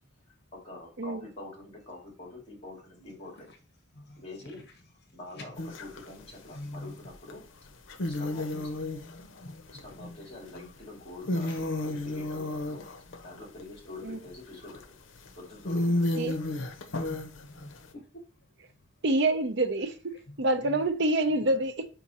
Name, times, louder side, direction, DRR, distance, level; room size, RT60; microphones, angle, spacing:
voice 1, 0.5-3.5 4.2-4.7 5.1-7.4 8.1-8.8 9.8-12.9 13.2-14.8 15.4-16.1, left 2 dB, 30° left, 2.7 m, -45 dB
voice 2, 3.9-4.6 5.4-5.5 6.5-6.9 9.4-9.9 11.2-11.6 11.9-12.0 17.0-18.0 20.7-20.8, left 1 dB, 60° left, 1.1 m, -45 dB
sound 1, 5.6-6.1 7.3-7.4 7.9-10.7 11.1-14.0 14.7-14.8 15.3-15.4 15.6-17.9, left 1 dB, 75° left, 0.7 m, -32 dB
voice 3, 19.0-21.9, right 2 dB, 60° right, 0.8 m, -27 dB
5.2 x 4.6 x 4.2 m
head